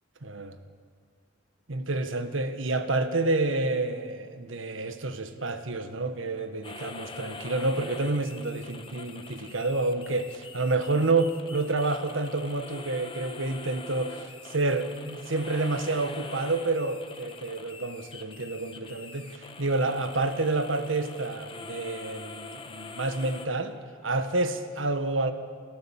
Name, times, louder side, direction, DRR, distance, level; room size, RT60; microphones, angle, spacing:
voice 1, 0.2-0.6 1.7-23.8 24.0-25.3, right 2 dB, 75° right, 9 dB, 1.5 m, -29 dB
sound 1, 6.6-23.5, left 4 dB, 25° left, 1.3 m, -44 dB
28.0 x 14.0 x 7.3 m, 2.1 s
head